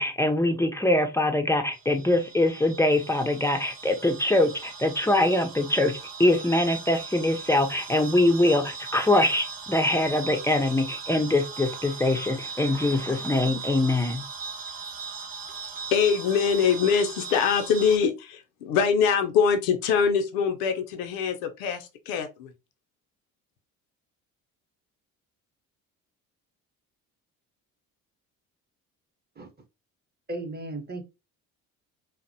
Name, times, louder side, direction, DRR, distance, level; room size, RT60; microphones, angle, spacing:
voice 1, 0.0-5.9 6.2-14.2, left 1 dB, 5° left, 0.4 m, -23 dB
sound 1, 1.7-18.0, right 5 dB, 60° right, 0.9 m, -39 dB
voice 2, 15.9-22.5, left 6 dB, 80° left, 0.5 m, -23 dB
voice 3, 30.3-31.0, right 2 dB, 25° right, 0.7 m, -35 dB
2.5 x 2.1 x 2.5 m
hypercardioid pair, 55°, 41 cm